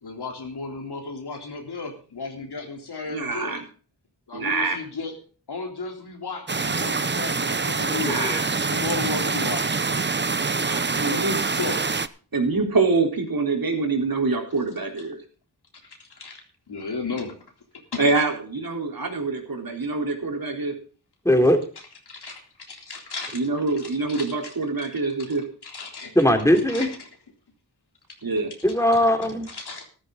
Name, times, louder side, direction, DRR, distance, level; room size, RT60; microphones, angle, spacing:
voice 1, 0.0-3.6 4.3-5.1 5.5-8.3 8.7-9.8 10.9-11.8 15.8-17.4 17.9-18.1 22.1-22.4 22.7-23.4 23.7-24.3 24.9-25.0 25.6-26.2 26.7-27.1 29.5-29.8, left 4 dB, 90° left, 2 dB, 3.7 m, -34 dB
voice 2, 3.1-3.6 4.3-4.8 8.0-8.4 10.7-11.4 12.3-15.2 18.0-20.7 23.3-25.4 28.2-28.5, right 3 dB, 65° right, 2 dB, 3.9 m, -25 dB
sound 1, 6.5-12.1, right 4 dB, 30° right, 0.8 m, -25 dB
voice 3, 7.9-8.4 21.2-21.6 26.1-26.9 28.6-29.5, left 1 dB, 10° left, 5 dB, 3.2 m, -20 dB
13.5 x 13.0 x 3.9 m, 0.38 s
wide cardioid pair, 75°, 38 cm